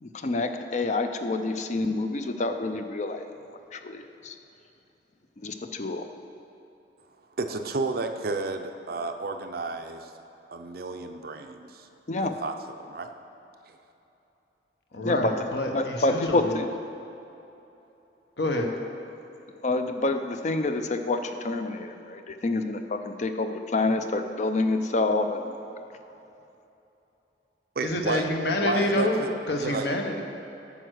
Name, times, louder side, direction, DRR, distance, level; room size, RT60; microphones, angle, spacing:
voice 1, 0.0-4.4 5.4-6.1 12.1-12.4 15.0-16.7 19.6-25.6, left 2 dB, 40° left, 7 dB, 0.5 m, -28 dB
voice 2, 7.4-10.1 10.5-11.9 12.4-13.1 13.7-13.8 27.8-28.2 28.6-29.9, right 3 dB, 55° right, 6 dB, 0.5 m, -32 dB
voice 3, 14.9-16.6 18.4-18.7 27.8-30.2, left 1 dB, 65° left, 2 dB, 1.0 m, -27 dB
9.0 x 5.6 x 6.2 m, 2.9 s
head